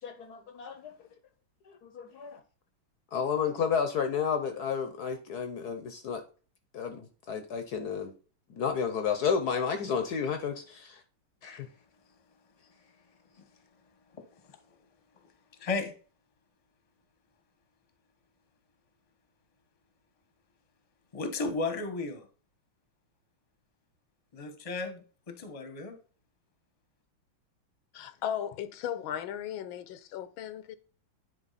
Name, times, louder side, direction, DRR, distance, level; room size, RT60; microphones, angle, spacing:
voice 1, 0.0-0.9 1.7-2.4 3.1-6.2 6.7-8.1 8.5-11.0 11.4-11.7, left 6 dB, 65° left, 1.2 m, -31 dB
voice 2, 15.6-15.9 21.1-22.2 24.3-26.0, left 3 dB, 25° left, 1.0 m, -34 dB
voice 3, 27.9-30.8, left 9 dB, 80° left, 1.5 m, -36 dB
9.9 x 4.4 x 4.1 m
omnidirectional pair, 2.2 m